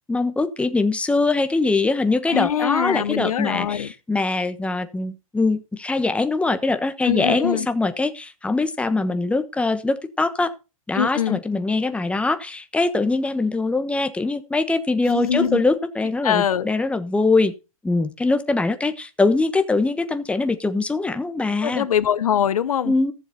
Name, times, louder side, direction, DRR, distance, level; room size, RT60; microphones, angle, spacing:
voice 1, 0.1-10.5 10.9-17.5 17.8-21.9 22.8-23.1, left 3 dB, 5° left, 1.1 m, -22 dB
voice 2, 2.3-3.9 7.0-7.7 10.9-11.4 15.1-15.6 16.2-16.7 21.6-22.9, left 9 dB, 80° left, 0.9 m, -23 dB
14.5 x 7.2 x 4.2 m
hypercardioid pair, 115°, 18 cm